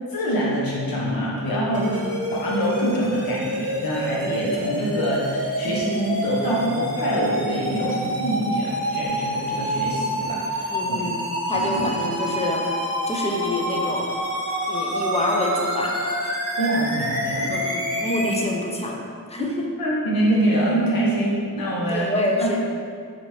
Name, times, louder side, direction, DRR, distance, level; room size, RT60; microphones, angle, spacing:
voice 1, 0.1-11.0 11.5-11.9 16.6-17.5 18.2-18.4 19.4-19.5 19.8-22.6, right 1 dB, 80° left, -5 dB, 0.8 m, -25 dB
sound 1, 1.7-18.3, equal, 40° right, 0.7 m, -27 dB
voice 2, 10.7-11.2 11.5-12.6 13.1-14.1 14.7-16.4 17.5-19.0 19.3-19.7 21.9-22.6, left 2 dB, 20° left, 0 dB, 0.3 m, -27 dB
3.0 x 2.5 x 2.9 m, 2.2 s
wide cardioid pair, 85°, 35 cm